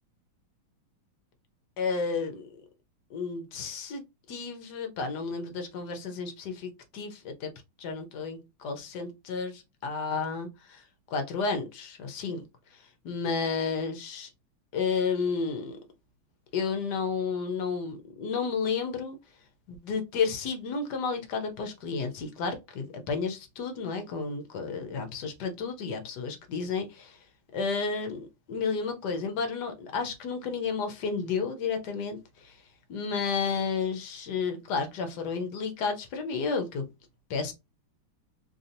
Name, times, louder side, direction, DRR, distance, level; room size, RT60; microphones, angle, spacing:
voice 1, 1.8-2.6 3.1-4.0 4.3-7.5 7.8-10.8 11.1-12.4 13.0-14.3 14.7-15.8 16.5-19.2 19.7-27.2 27.5-32.6 32.9-36.9 37.3-37.5, left 5 dB, 65° left, 1.1 m, -32 dB
3.4 x 2.7 x 2.6 m
omnidirectional pair, 2.3 m